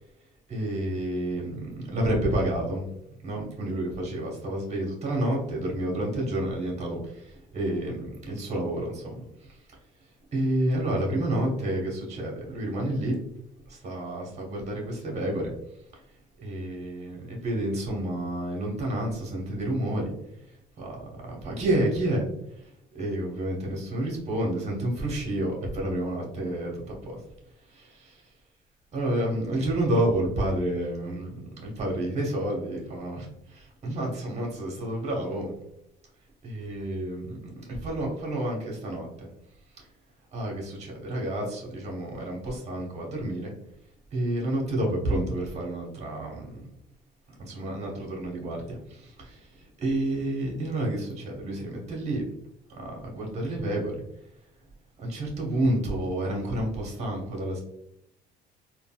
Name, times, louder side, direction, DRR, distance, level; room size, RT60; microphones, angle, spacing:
voice 1, 0.5-2.9 3.2-9.2 9.5-9.6 10.3-13.2 13.7-15.5 16.4-20.1 20.8-22.2 22.6-27.2 27.7-28.2 28.9-35.6 36.4-39.3 39.8-39.9 40.3-43.5 44.1-46.6 47.5-52.3 52.7-53.9 55.0-57.6, right 1 dB, 40° right, -1 dB, 1.1 m, -30 dB
3.6 x 2.2 x 2.3 m, 0.79 s
cardioid pair, 110°, 17 cm